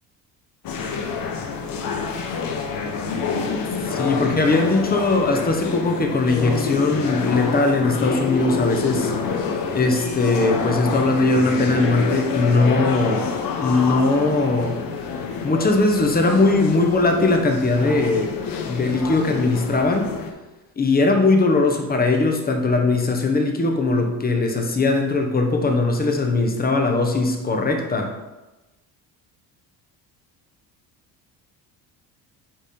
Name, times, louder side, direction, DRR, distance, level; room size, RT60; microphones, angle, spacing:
sound 1, 0.6-20.3, left 5 dB, 55° left, 1.0 m, -27 dB
voice 1, 3.9-9.1 9.7-13.3 13.6-14.8 15.4-18.3 18.6-20.1 20.8-28.1, left 3 dB, 20° left, 4 dB, 1.0 m, -20 dB
8.9 x 3.5 x 4.3 m, 1.1 s
cardioid pair, 110°, 41 cm